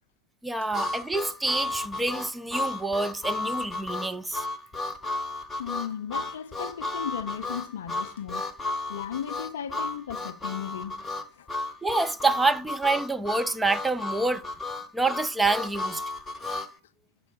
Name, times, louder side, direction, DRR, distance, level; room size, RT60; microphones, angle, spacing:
voice 1, 0.4-4.4 11.8-14.4 14.9-16.0, right 3 dB, 5° right, 0.4 m, -27 dB
Harmonica, 0.7-16.7, left 2 dB, 15° left, 1.0 m, -33 dB
voice 2, 5.6-8.5 8.9-11.0 11.3-11.5, left 9 dB, 60° left, 0.4 m, -36 dB
6.0 x 4.7 x 5.6 m
figure-of-eight pair, 90°, 0 cm